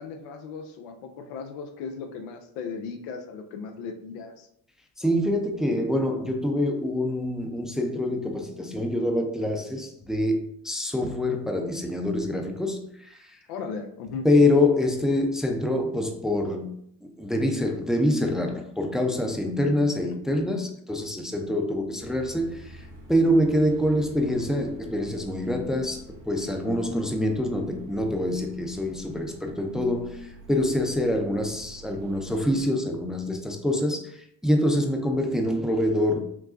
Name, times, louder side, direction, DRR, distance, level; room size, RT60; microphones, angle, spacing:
voice 1, 0.0-4.5 13.5-14.3, left 5 dB, 90° left, 0.7 m, -37 dB
voice 2, 5.0-13.2 14.2-16.7 17.0-22.8 23.1-36.2, left 1 dB, ahead, 0.5 m, -25 dB
sound 1, 22.0-32.6, right 2 dB, 85° right, 1.4 m, -47 dB
6.0 x 2.3 x 2.5 m
supercardioid pair, 65°, 44 cm